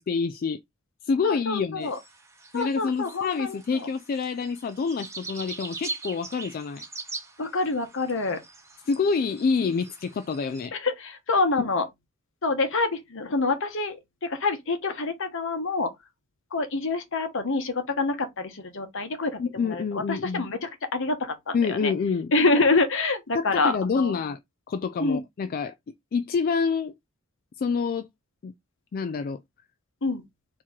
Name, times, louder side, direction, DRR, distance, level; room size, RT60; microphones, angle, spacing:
voice 1, 0.1-0.6 1.0-1.9 2.5-6.8 8.9-10.7 11.6-11.7 19.4-20.4 21.5-22.3 23.3-24.4 24.7-25.7 26.1-26.9 27.6-28.1 28.4-28.5 28.9-29.4, left 5 dB, 45° left, 0.3 m, -27 dB
voice 2, 1.2-2.0 2.5-3.9 7.4-8.4 10.7-11.9 12.4-15.9 16.5-21.9 22.3-24.2 25.0-25.2 30.0-30.2, left 3 dB, 65° left, 1.1 m, -27 dB
sound 1, 1.8-10.7, right 3 dB, 15° right, 1.0 m, -42 dB
4.6 x 2.9 x 3.7 m
head